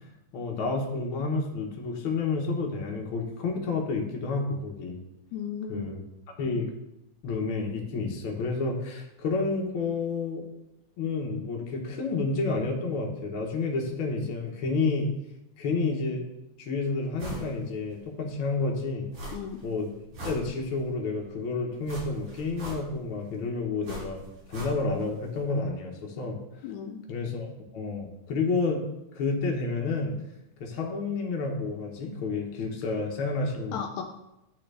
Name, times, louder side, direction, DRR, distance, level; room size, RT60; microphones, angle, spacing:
voice 1, 0.3-5.0 5.7-6.0 6.4-6.7 7.2-10.4 11.0-15.1 15.6-16.3 16.6-19.1 19.6-19.9 20.2-24.2 24.5-26.4 27.1-28.8 29.1-30.1 30.6-33.9, left 3 dB, 60° left, 1 dB, 1.5 m, -30 dB
voice 2, 5.3-5.9 19.3-19.6 26.6-27.0 33.7-34.0, left 7 dB, 80° left, 4 dB, 1.8 m, -35 dB
sound 1, 17.2-17.5 17.9-18.0 19.1-19.6 20.0-20.9 21.8-23.1 23.8-25.1 25.3-25.4, right 1 dB, 80° right, 4.2 m, -39 dB
10.5 x 3.8 x 3.3 m, 0.91 s
omnidirectional pair, 3.4 m